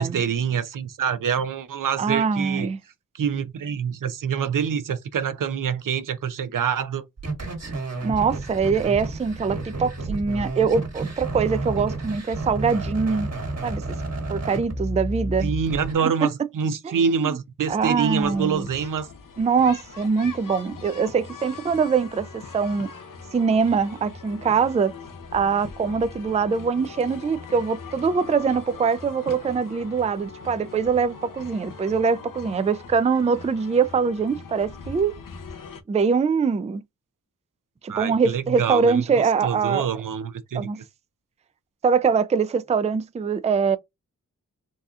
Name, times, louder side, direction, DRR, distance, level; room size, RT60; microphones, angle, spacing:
voice 1, 0.0-2.7 3.1-7.1 15.4-19.1 37.9-40.7, right 7 dB, 75° right, 0.5 m, -26 dB
voice 2, 2.0-2.8 8.0-13.3 13.6-14.0 14.3-15.5 16.0-16.3 16.8-17.4 17.7-18.7 19.4-22.9 23.3-24.9 25.3-35.2 35.9-36.8 37.8-39.9 40.5-40.8 41.8-43.8, right 5 dB, 20° right, 0.3 m, -23 dB
sound 1, 7.2-15.9, right 2 dB, 55° right, 1.5 m, -31 dB
sound 2, 17.6-35.8, left 5 dB, 80° left, 0.7 m, -41 dB
4.1 x 2.4 x 2.4 m
wide cardioid pair, 70°, 32 cm